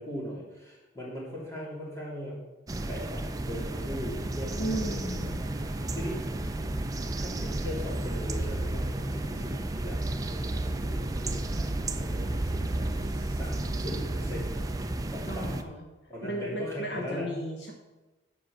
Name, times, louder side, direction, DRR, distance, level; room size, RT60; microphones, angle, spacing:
voice 1, 0.0-2.4 2.9-6.2 7.1-14.6 15.1-15.7 16.1-17.3, equal, 15° left, -5 dB, 2.6 m, -40 dB
sound 1, 2.7-15.6, right 1 dB, 20° right, 0.4 m, -32 dB
voice 2, 4.6-5.4 15.3-15.9 16.2-17.7, right 1 dB, 55° left, 1 dB, 1.1 m, -35 dB
7.8 x 5.9 x 6.3 m, 1.1 s
head